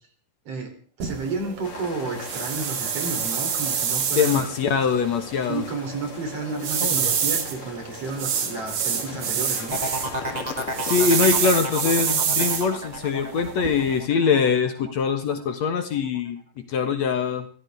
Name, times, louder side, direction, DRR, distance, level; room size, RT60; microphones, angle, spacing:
voice 1, 0.5-4.5 5.5-9.8, right 4 dB, 50° right, 5 dB, 4.0 m, -32 dB
sound 1, 1.0-14.0, right 7 dB, 80° right, 3.7 m, -28 dB
sound 2, 1.6-12.6, left 5 dB, 80° left, 4.3 m, -39 dB
voice 2, 4.2-5.6 10.8-17.5, left 6 dB, 60° left, 7 dB, 2.5 m, -23 dB
sound 3, 9.7-15.3 15.7-16.2, right 1 dB, 15° right, 1.4 m, -32 dB
24.0 x 15.5 x 3.5 m, 0.42 s
omnidirectional pair, 3.8 m